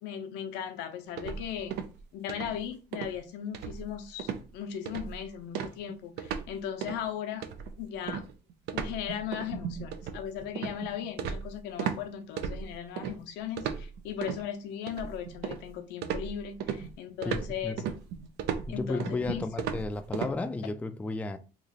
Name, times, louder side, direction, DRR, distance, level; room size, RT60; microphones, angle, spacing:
voice 1, 0.0-1.8 2.1-7.4 7.8-8.2 8.7-17.7 18.7-19.5, left 9 dB, 90° left, 0.6 m, -37 dB
sound 1, 1.2-2.0 2.3-2.6 2.9-3.2 3.5-3.9 4.2-4.5 4.9-5.2 5.5-6.5 6.8-7.0 7.4-12.0 12.4-13.1 13.6-14.4 14.9-15.7 16.0-20.3, right 7 dB, 80° right, 0.5 m, -35 dB
voice 2, 17.3-17.8 18.7-21.4, left 3 dB, 10° left, 0.3 m, -33 dB
3.1 x 2.4 x 3.9 m
cardioid pair, 110°, 17 cm